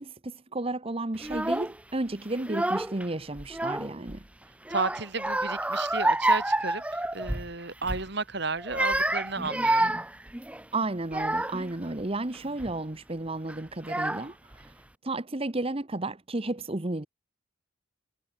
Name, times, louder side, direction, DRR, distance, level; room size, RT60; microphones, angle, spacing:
voice 1, 0.0-4.2 10.7-14.7 15.0-17.1, right 2 dB, 30° right, 1.1 m, -33 dB
Child speech kid speaking / Crying sobbing, 1.2-1.8 2.4-3.1 3.4-4.2 4.7-7.5 7.8-8.1 8.6-11.7 12.3-12.7 13.5-13.6 13.8-14.6, right 1 dB, 5° right, 0.6 m, -28 dB
voice 2, 4.7-10.0, right 3 dB, 60° right, 3.6 m, -33 dB
head